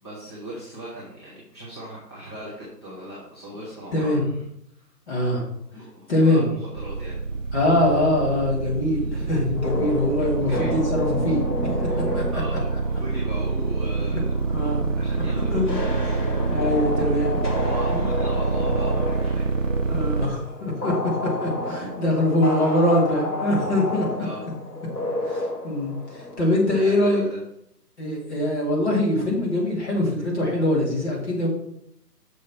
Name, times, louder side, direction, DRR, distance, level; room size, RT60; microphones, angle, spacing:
voice 1, 0.0-4.4 4.8-4.9 5.7-7.2 10.4-10.8 11.6-11.9 12.3-14.4 14.9-16.3 17.5-19.6 22.6-22.7 24.2-24.4 26.7-27.4, right 1 dB, 15° left, -10 dB, 0.9 m, -38 dB
voice 2, 3.9-4.2 5.1-5.4 6.1-6.5 7.5-11.4 11.8-12.6 14.1-14.2 14.5-14.9 15.5-15.7 16.5-17.4 17.9-18.1 19.4-24.1 24.4-24.5 25.3-27.2 28.0-31.5, left 1 dB, 40° left, -3 dB, 2.6 m, -23 dB
sound 1, 6.7-20.3, right 4 dB, 50° right, 0.7 m, -26 dB
sound 2, 9.5-26.5, left 1 dB, 85° left, 2.2 m, -31 dB
6.3 x 5.6 x 4.4 m, 0.75 s
hypercardioid pair, 170°, 49 cm